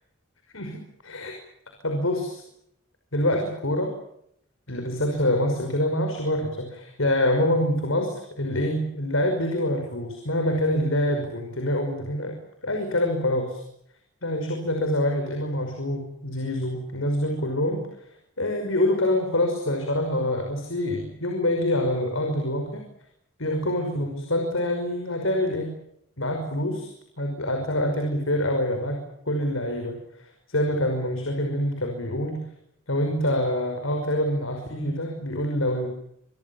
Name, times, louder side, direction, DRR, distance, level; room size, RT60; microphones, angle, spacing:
voice 1, 0.5-1.4 1.8-2.4 3.1-3.9 4.7-12.4 12.6-13.6 14.2-17.8 18.4-22.8 23.4-25.7 26.2-32.4 32.9-35.9, left 1 dB, 80° left, 4 dB, 5.7 m, -26 dB
27.5 x 24.5 x 7.3 m, 0.74 s
head